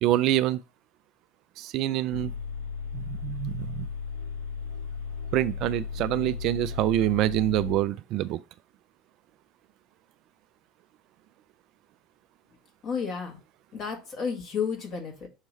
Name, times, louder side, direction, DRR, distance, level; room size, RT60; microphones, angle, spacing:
voice 1, 0.0-0.6 1.6-2.3 2.9-3.9 5.3-8.4, right 14 dB, 50° right, 0.3 m, -26 dB
sound 1, 2.1-7.8, left 6 dB, 70° left, 1.5 m, -35 dB
voice 2, 12.8-13.4 13.7-15.3, left 6 dB, 40° left, 1.8 m, -32 dB
6.5 x 3.0 x 5.4 m
figure-of-eight pair, 70°, 0 cm